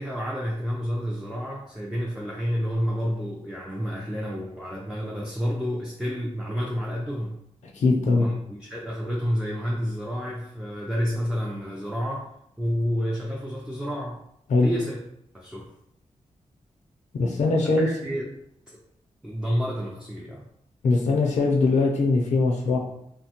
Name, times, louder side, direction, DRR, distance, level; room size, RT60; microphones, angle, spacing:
voice 1, 0.0-7.4 8.1-12.3 12.6-14.2 14.6-15.0 15.3-15.6 17.6-18.3 18.7-18.8 19.2-20.4, equal, 5° right, -3 dB, 0.3 m, -29 dB
voice 2, 7.7-8.3 14.5-14.7 17.1-17.9 20.8-22.8, left 3 dB, 75° left, 0 dB, 0.4 m, -21 dB
2.9 x 2.1 x 2.8 m, 0.76 s
wide cardioid pair, 150°, 12 cm